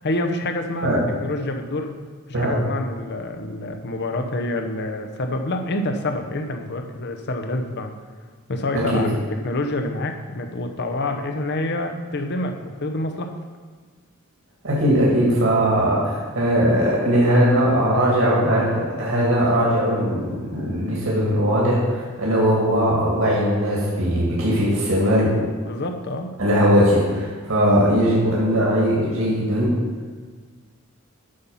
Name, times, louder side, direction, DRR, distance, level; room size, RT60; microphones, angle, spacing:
voice 1, 0.0-1.9 2.4-7.9 8.5-9.1 9.4-13.3 25.7-26.3, left 2 dB, 55° left, 5 dB, 0.8 m, -27 dB
voice 2, 14.6-25.4 26.4-29.8, equal, 70° right, -5 dB, 2.4 m, -19 dB
8.7 x 5.7 x 5.6 m, 1.5 s
head